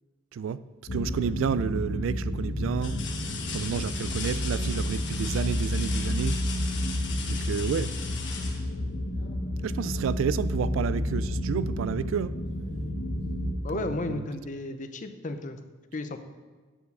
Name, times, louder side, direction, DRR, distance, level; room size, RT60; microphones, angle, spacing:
voice 1, 0.3-0.6 0.9-3.0 3.5-6.4 7.3-7.9 9.6-12.3 13.7-14.2, right 7 dB, 90° right, 0.3 m, -30 dB
sound 1, 0.9-13.6, left 1 dB, 85° left, 1.0 m, -30 dB
sound 2, 1.0-1.5 2.1-2.2 2.8-9.5 11.2-11.4 11.8-12.9 14.2-14.3, left 6 dB, 65° left, 1.2 m, -39 dB
voice 2, 13.6-15.6 15.9-16.2, left 2 dB, 40° left, 0.6 m, -33 dB
8.8 x 4.7 x 5.3 m
head